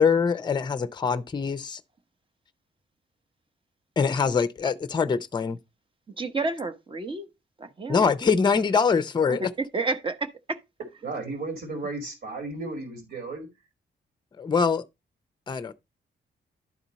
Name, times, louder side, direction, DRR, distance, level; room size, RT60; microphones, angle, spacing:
voice 1, 0.0-1.8 4.0-5.6 7.9-9.5 14.4-14.8 15.5-15.7, left 5 dB, 25° left, 0.5 m, -23 dB
voice 2, 6.2-7.3 7.6-8.1 9.3-10.6, right 3 dB, 25° right, 0.9 m, -30 dB
voice 3, 11.0-13.5, right 3 dB, 65° right, 2.4 m, -34 dB
11.5 x 4.3 x 4.0 m
wide cardioid pair, 145°, 19 cm